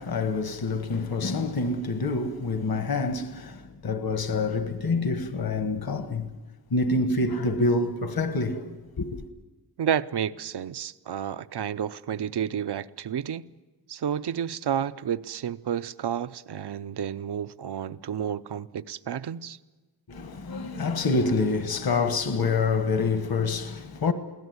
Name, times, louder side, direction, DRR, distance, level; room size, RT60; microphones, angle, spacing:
voice 1, 0.0-6.3 6.7-9.2 20.1-24.1, left 3 dB, 60° left, 1.4 m, -27 dB
voice 2, 9.8-13.4 13.9-19.6, right 9 dB, 70° right, 0.7 m, -31 dB
22.5 x 17.0 x 9.6 m
wide cardioid pair, 120°, 41 cm